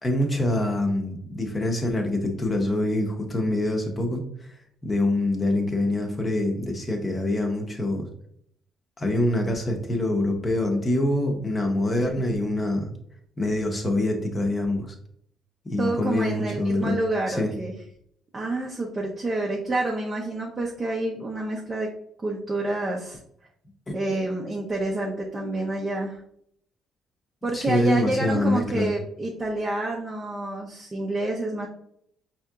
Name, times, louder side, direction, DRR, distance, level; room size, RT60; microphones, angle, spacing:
voice 1, 0.0-4.2 4.8-8.1 9.0-12.9 13.4-14.9 15.7-17.0 17.3-17.5 23.9-24.0 27.5-28.9, left 1 dB, 20° left, 2 dB, 0.8 m, -25 dB
voice 2, 15.8-17.7 18.3-21.9 22.2-23.2 23.9-26.2 27.4-31.7, right 2 dB, 20° right, -2 dB, 0.6 m, -28 dB
5.5 x 2.8 x 2.3 m, 0.69 s
cardioid pair, 135°, 0 cm